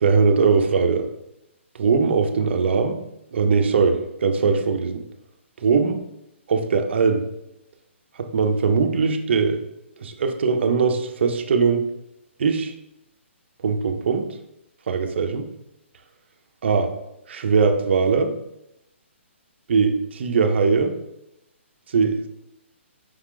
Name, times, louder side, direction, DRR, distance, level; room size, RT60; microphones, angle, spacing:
voice 1, 0.0-1.1 1.7-3.0 3.3-5.0 5.6-6.0 6.5-7.3 8.2-9.6 10.0-11.9 12.4-12.7 13.6-14.4 14.9-15.5 16.6-16.9 17.3-18.3 19.7-21.0 21.9-22.3, right 5 dB, 60° right, 6 dB, 0.6 m, -20 dB
5.0 x 2.4 x 3.7 m, 0.86 s
hypercardioid pair, 145°, 7 cm